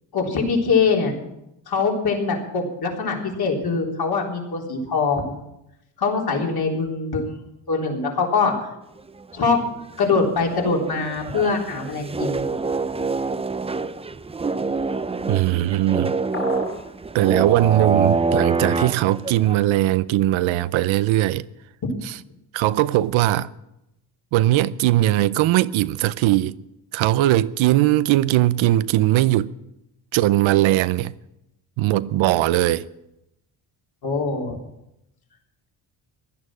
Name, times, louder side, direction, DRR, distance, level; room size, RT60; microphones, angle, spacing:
voice 1, 0.1-1.1 1.7-5.4 6.0-7.4 7.7-8.5 9.3-9.6 10.0-12.4 34.0-34.6, left 4 dB, 55° left, 3.8 m, -23 dB
sound 1, 9.1-9.6 10.0-10.1 10.2-19.5, right 4 dB, 15° right, 0.5 m, -26 dB
voice 2, 15.3-16.2 17.1-21.4 22.0-22.2 22.5-23.5 24.3-26.5 26.9-29.5 30.1-31.1 31.8-32.8, right 15 dB, 85° right, 0.7 m, -19 dB
sound 2, 16.3-16.9, left 3 dB, 25° left, 2.4 m, -31 dB
16.0 x 11.5 x 6.2 m
cardioid pair, 90°, 46 cm